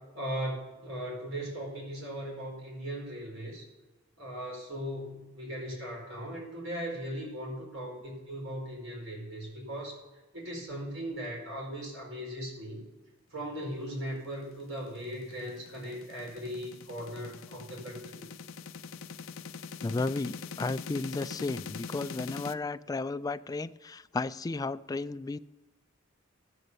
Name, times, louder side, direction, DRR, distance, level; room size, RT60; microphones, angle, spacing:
voice 1, 0.1-3.6 4.2-9.9 10.3-12.8 13.3-18.3, equal, 75° right, 4.6 m, -38 dB
sound 1, 14.4-22.5, left 5 dB, 80° left, 0.5 m, -43 dB
voice 2, 19.8-25.4, left 3 dB, 20° left, 0.3 m, -33 dB
13.0 x 7.7 x 6.8 m
head